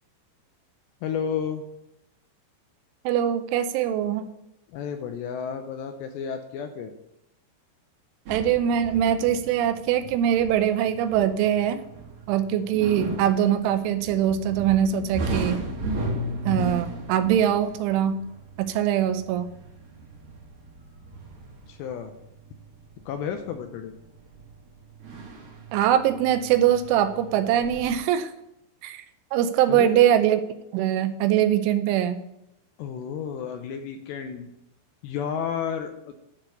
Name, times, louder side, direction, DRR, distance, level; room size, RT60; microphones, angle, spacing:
voice 1, 1.0-1.6 4.7-6.9 21.7-22.1 23.1-23.9 29.7-30.0 32.8-34.5 35.0-36.2, left 7 dB, 80° left, 7 dB, 2.6 m, -32 dB
voice 2, 3.1-4.2 8.3-11.8 12.3-15.6 16.5-18.2 18.6-19.5 25.7-28.3 28.8-29.0 29.3-30.4 30.7-32.2, right 10 dB, 85° right, 9 dB, 3.1 m, -22 dB
sound 1, 8.3-28.0, right 2 dB, 55° right, 3.5 m, -36 dB
11.5 x 4.2 x 8.0 m, 0.83 s
omnidirectional pair, 5.6 m